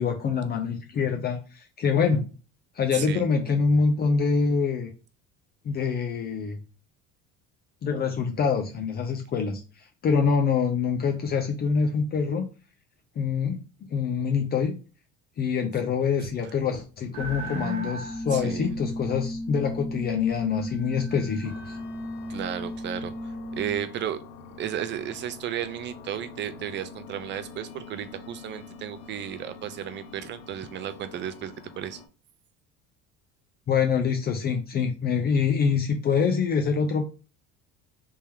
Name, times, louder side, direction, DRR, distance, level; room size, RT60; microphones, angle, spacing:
voice 1, 0.0-2.2 2.7-4.9 5.6-6.6 7.8-12.5 13.2-13.6 13.9-14.7 15.4-21.8 33.7-37.1, left 5 dB, 35° left, 4 dB, 0.6 m, -25 dB
voice 2, 2.9-3.2 16.2-16.3 18.3-18.7 22.3-23.1 23.6-24.2 24.6-32.0, right 10 dB, 40° right, 11 dB, 0.5 m, -34 dB
sound 1, 17.1-23.8, equal, 65° right, 1.1 m, -35 dB
sound 2, 21.4-32.1, left 5 dB, 65° left, 0.8 m, -46 dB
3.4 x 2.9 x 3.4 m, 0.34 s
cardioid pair, 130°, 29 cm